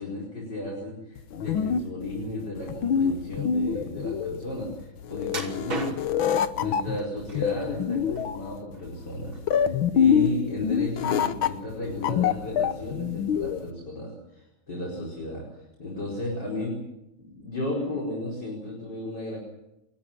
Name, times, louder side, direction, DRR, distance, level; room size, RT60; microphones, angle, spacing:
voice 1, 0.0-6.0 6.6-16.8 17.2-19.4, left 1 dB, 60° left, -3 dB, 5.6 m, -34 dB
sound 1, 1.2-13.7, left 8 dB, 85° left, 1.8 m, -26 dB
sound 2, 5.3-6.3 7.0-7.7 8.1-9.0 9.3-9.5 10.0-10.1, right 3 dB, 80° right, 4.1 m, -36 dB
30.0 x 14.5 x 8.8 m, 0.90 s
omnidirectional pair, 2.1 m